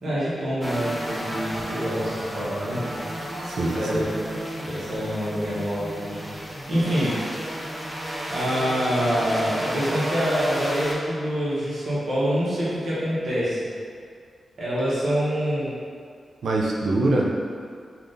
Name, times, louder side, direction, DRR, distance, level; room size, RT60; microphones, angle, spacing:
voice 1, 0.0-3.0 3.7-4.1 4.6-6.3 6.7-7.1 8.3-13.6 14.6-15.7, equal, 55° right, -9 dB, 1.0 m, -26 dB
sound 1, 0.6-11.0, equal, 5° right, 0.3 m, -32 dB
voice 2, 3.4-4.1 16.4-17.3, right 2 dB, 80° right, -2 dB, 0.4 m, -23 dB
3.5 x 2.4 x 2.6 m, 2.2 s
wide cardioid pair, 155°, 0 cm